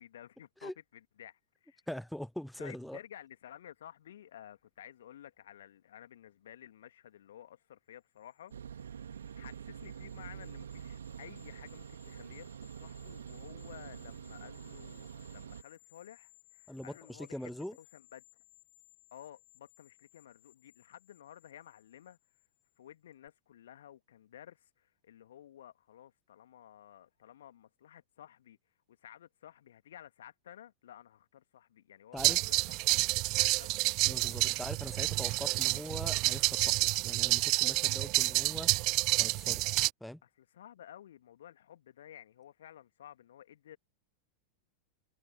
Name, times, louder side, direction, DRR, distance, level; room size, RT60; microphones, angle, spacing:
voice 1, 0.0-1.8 2.6-18.2 19.1-22.2 22.8-28.6 28.9-33.0 33.4-33.7 34.2-34.4 40.2-43.8, left 11 dB, 60° left, 2.3 m, -53 dB
voice 2, 1.9-3.0 16.7-17.8 32.1-32.4 34.0-38.7 39.2-39.6 40.0-40.2, left 1 dB, ahead, 0.7 m, -42 dB
sound 1, 8.2-22.8 23.1-23.3, left 26 dB, 40° left, 6.3 m, -64 dB
sound 2, 8.5-15.6, right 8 dB, 65° right, 3.4 m, -46 dB
sound 3, 32.2-39.9, right 25 dB, 40° right, 0.6 m, -29 dB
figure-of-eight pair, 90°, 0 cm